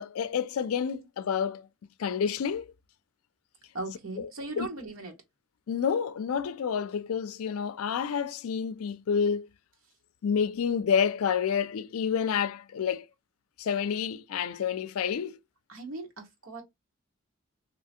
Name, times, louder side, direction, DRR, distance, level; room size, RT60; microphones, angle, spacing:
voice 1, 0.0-1.7 2.0-2.7 4.6-4.7 5.7-9.5 10.2-13.0 13.6-15.4, left 7 dB, 90° left, 0.4 m, -29 dB
voice 2, 3.7-5.1 15.7-16.6, right 2 dB, 75° right, 1.1 m, -38 dB
3.2 x 2.8 x 2.7 m
head